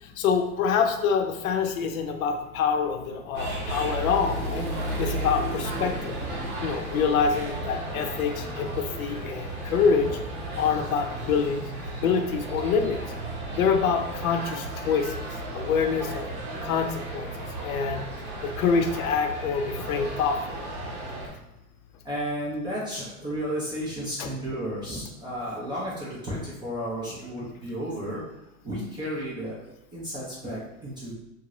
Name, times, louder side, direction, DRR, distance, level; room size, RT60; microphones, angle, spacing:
voice 1, 0.2-6.1 6.6-10.1 10.6-11.7 12.0-13.0 13.5-15.2 15.5-16.3 16.6-17.3 17.6-18.0 18.4-20.6 24.2-24.3, left 6 dB, 70° left, 5 dB, 0.6 m, -26 dB
sound 1, 3.3-21.3, right 1 dB, 85° right, 1.1 m, -34 dB
voice 2, 22.1-28.2 28.6-29.6 29.9-31.1, equal, 10° right, -7 dB, 0.4 m, -33 dB
2.6 x 2.5 x 2.9 m, 0.93 s
hypercardioid pair, 120°, 44 cm